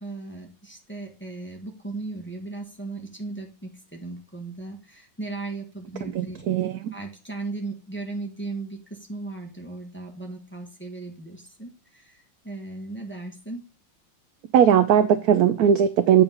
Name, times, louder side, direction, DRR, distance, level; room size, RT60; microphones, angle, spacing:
voice 1, 0.0-6.4 6.9-13.6, right 3 dB, 5° left, 1.2 m, -37 dB
voice 2, 6.1-6.9 14.5-16.2, right 9 dB, 75° right, 0.8 m, -19 dB
8.5 x 3.9 x 5.5 m
omnidirectional pair, 2.1 m